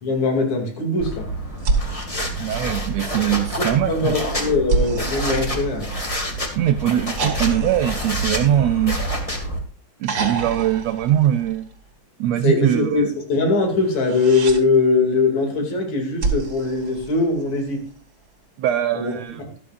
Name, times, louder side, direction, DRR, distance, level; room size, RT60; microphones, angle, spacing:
voice 1, 0.0-1.3 3.5-5.9 12.4-17.8 18.9-19.1, left 3 dB, 65° left, 3 dB, 3.9 m, -21 dB
sound 1, 1.0-9.6, equal, 15° left, 1.5 m, -27 dB
sound 2, 1.6-3.2 4.7-6.4 7.2-9.4 10.0-11.9 13.8-14.6 16.2-17.7 19.2-19.3, right 3 dB, 40° right, 2.2 m, -28 dB
voice 2, 2.4-4.2 6.6-9.0 10.0-11.7 12.2-13.1 18.6-19.4, right 11 dB, 75° right, 10 dB, 1.6 m, -21 dB
13.0 x 12.5 x 2.5 m, 0.44 s
omnidirectional pair, 3.5 m